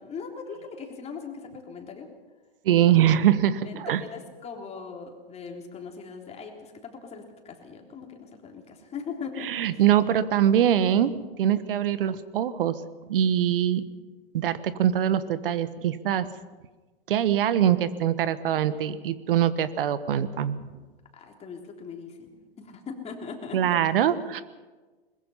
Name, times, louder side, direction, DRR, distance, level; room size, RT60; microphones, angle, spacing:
voice 1, 0.0-2.1 2.7-3.1 3.6-9.5 21.1-23.8, left 5 dB, 20° left, 2 dB, 3.5 m, -40 dB
voice 2, 2.6-4.0 9.4-11.1 11.4-12.7 13.1-13.8 14.3-16.3 17.1-20.6 23.5-24.4, right 10 dB, 60° right, 14 dB, 1.4 m, -23 dB
22.0 x 21.0 x 5.8 m, 1.3 s
hypercardioid pair, 110°, 30 cm